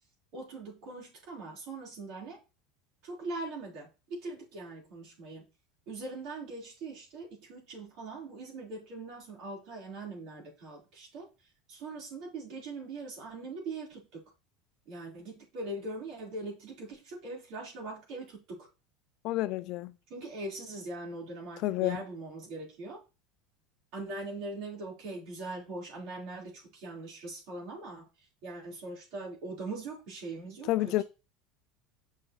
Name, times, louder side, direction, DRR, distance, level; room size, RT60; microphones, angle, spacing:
voice 1, 0.3-2.4 3.0-5.4 5.9-11.3 11.7-14.3 14.9-18.7 20.1-23.0 23.9-31.0, right 2 dB, 60° right, 4.3 m, -41 dB
voice 2, 19.2-19.9 21.6-22.0 30.7-31.0, left 17 dB, 60° left, 0.3 m, -29 dB
6.4 x 6.0 x 3.2 m
hypercardioid pair, 90°, 0 cm